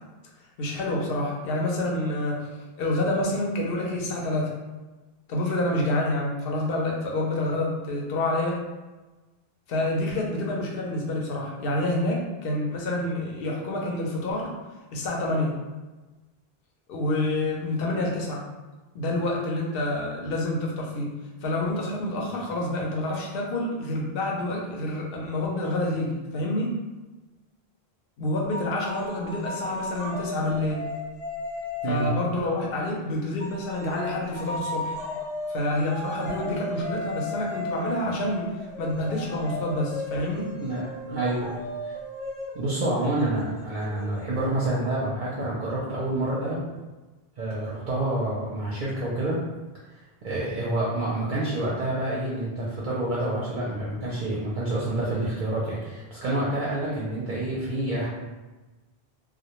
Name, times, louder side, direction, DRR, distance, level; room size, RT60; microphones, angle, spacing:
voice 1, 0.6-2.5 2.8-4.5 5.3-8.6 9.7-14.6 14.9-15.5 16.9-18.4 18.9-21.1 21.4-26.8 28.2-30.8 31.9-35.0 35.5-40.6, left 1 dB, 70° left, -1 dB, 0.8 m, -28 dB
sound 1, 28.5-32.4 33.4-44.7, left 1 dB, 40° left, 0.6 m, -35 dB
voice 2, 40.6-42.0 42.5-46.6 47.4-49.4 50.2-58.1, right 1 dB, 60° right, -6 dB, 0.6 m, -28 dB
2.1 x 2.1 x 2.8 m, 1.2 s
omnidirectional pair, 1.0 m